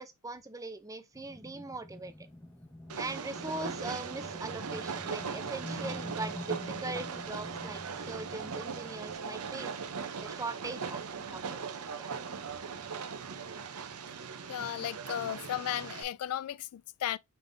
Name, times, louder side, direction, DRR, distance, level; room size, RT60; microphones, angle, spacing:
voice 1, 0.0-2.3 3.0-9.7 10.2-12.1, right 2 dB, 15° right, 0.5 m, -41 dB
sound 1, 1.1-9.2, left 1 dB, 10° left, 0.9 m, -46 dB
Train, 2.9-16.0, right 6 dB, 90° right, 0.7 m, -39 dB
voice 2, 14.5-17.2, left 11 dB, 80° left, 0.3 m, -35 dB
5.4 x 3.6 x 2.6 m
head